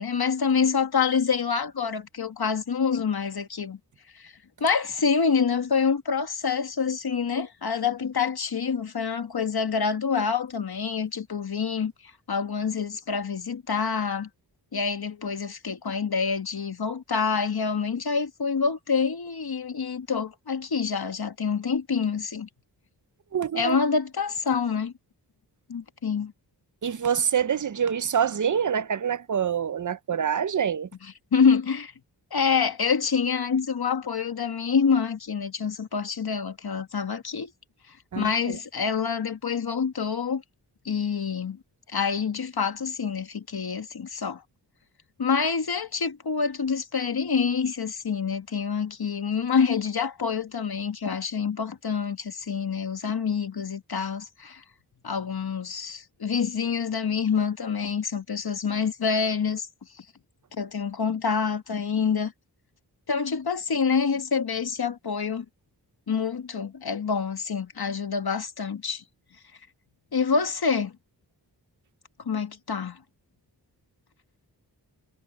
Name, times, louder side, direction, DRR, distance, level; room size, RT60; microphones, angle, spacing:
voice 1, 0.0-3.8 4.1-4.3 4.6-11.9 12.3-14.3 14.7-22.5 23.5-24.9 25.7-26.3 31.3-31.9 32.3-37.5 38.1-40.4 40.8-41.6 41.9-44.4 45.2-54.6 55.0-59.7 60.0-60.1 60.6-62.3 63.1-65.4 66.1-69.0 70.1-70.9 72.2-73.0, left 6 dB, 60° left, 1.7 m, -26 dB
voice 2, 23.3-23.8 26.8-30.9 38.1-38.6, right 8 dB, 45° right, 0.7 m, -26 dB
wide cardioid pair, 75°, 41 cm